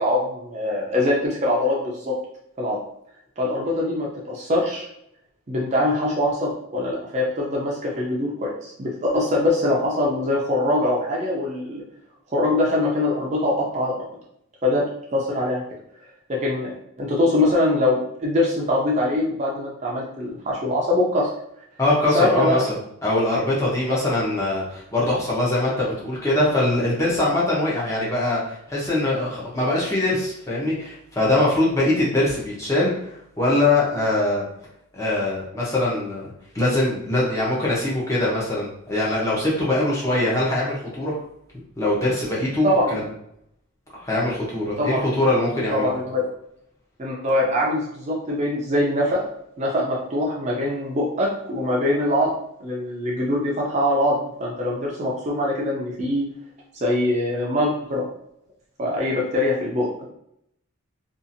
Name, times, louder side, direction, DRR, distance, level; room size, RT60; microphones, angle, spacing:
voice 1, 0.0-2.2 2.6-2.8 3.4-4.9 5.5-11.8 12.3-14.0 14.6-14.8 15.1-15.6 16.3-21.3 22.1-22.7 42.6-43.0 44.8-45.1 45.7-46.3 47.0-49.2 49.6-52.3 52.6-56.3 56.8-58.1 58.8-60.1, left 1 dB, 30° right, -3 dB, 0.4 m, -23 dB
voice 2, 21.8-34.4 34.9-36.3 36.5-41.1 41.8-43.0 43.9-45.9, left 1 dB, 15° left, -5 dB, 0.7 m, -22 dB
2.7 x 2.4 x 2.6 m, 0.74 s
head